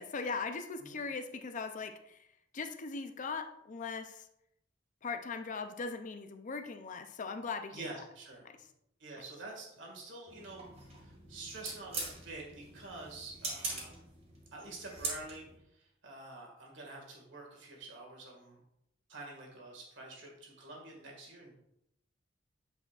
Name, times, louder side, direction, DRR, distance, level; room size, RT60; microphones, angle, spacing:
voice 1, 0.0-2.2 2.5-4.3 5.0-7.9 8.4-8.6, left 4 dB, 40° left, 8 dB, 0.5 m, -39 dB
voice 2, 7.7-8.4 9.0-13.9 14.5-15.5 15.7-18.6 19.1-21.5, right 2 dB, 70° right, -1 dB, 1.9 m, -47 dB
sound 1, 10.3-15.6, right 3 dB, 35° right, 1.8 m, -43 dB
8.4 x 5.3 x 2.4 m, 0.77 s
head